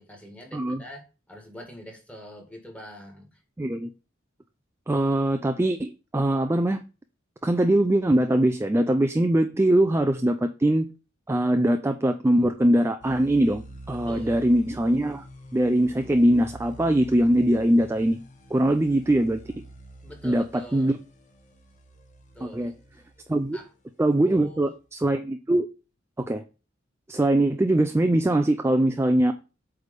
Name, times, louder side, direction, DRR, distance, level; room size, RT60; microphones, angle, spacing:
voice 1, 0.0-3.4 13.9-14.4 20.0-21.0 22.3-23.0 23.5-23.7 24.2-24.7, equal, 5° left, 1.7 m, -44 dB
voice 2, 3.6-3.9 4.9-6.8 7.4-10.9 11.3-15.3 15.5-18.2 18.5-19.4 20.2-21.0 22.4-22.7 23.3-23.6 24.0-25.7 26.2-26.4 27.1-29.3, right 1 dB, 15° right, 0.4 m, -22 dB
sound 1, 13.0-23.5, right 1 dB, 40° left, 1.1 m, -46 dB
8.1 x 3.4 x 5.1 m
head